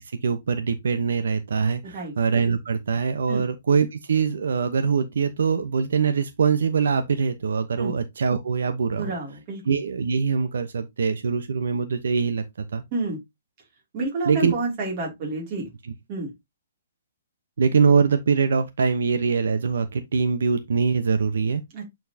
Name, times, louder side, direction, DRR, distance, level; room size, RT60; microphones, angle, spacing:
voice 1, 0.1-9.1 9.6-12.8 14.2-14.5 17.6-21.8, right 5 dB, 75° right, 1.0 m, -23 dB
voice 2, 8.9-9.6 12.9-13.2 13.9-15.6 16.1-16.3 21.7-21.8, right 3 dB, 25° right, 2.7 m, -29 dB
8.2 x 4.5 x 2.8 m
hypercardioid pair, 180°, 0 cm